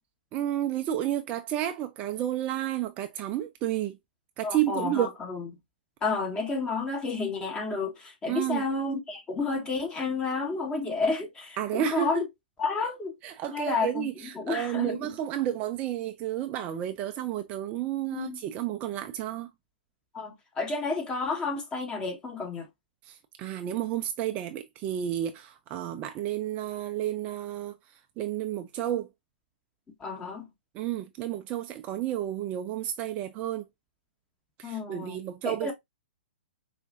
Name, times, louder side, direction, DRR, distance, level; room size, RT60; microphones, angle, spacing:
voice 1, 0.3-4.0 4.4-5.1 8.3-8.6 11.6-12.2 13.2-19.5 23.1-27.8 28.2-29.1 30.7-33.6 34.6-35.7, right 12 dB, 30° right, 0.4 m, -31 dB
voice 2, 4.4-5.5 6.0-12.2 12.6-13.1 13.5-15.1 18.1-18.4 20.1-22.7 30.0-30.5 34.6-35.2 35.4-35.7, left 4 dB, 15° left, 1.1 m, -31 dB
4.6 x 2.5 x 2.5 m
hypercardioid pair, 120°, 5 cm